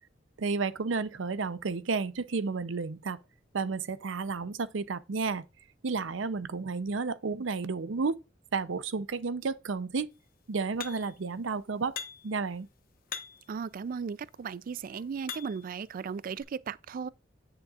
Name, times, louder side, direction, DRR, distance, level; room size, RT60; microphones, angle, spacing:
voice 1, 0.4-3.2 3.5-5.4 5.8-8.2 8.5-10.1 10.5-11.9 12.2-12.7, right 4 dB, 85° right, 0.6 m, -32 dB
sound 1, 10.8-11.2 12.0-12.4 13.1-13.6 14.4-15.8 16.4-16.5, left 8 dB, 50° left, 1.0 m, -42 dB
voice 2, 13.5-17.1, right 6 dB, 50° right, 0.3 m, -36 dB
9.8 x 6.6 x 2.4 m
head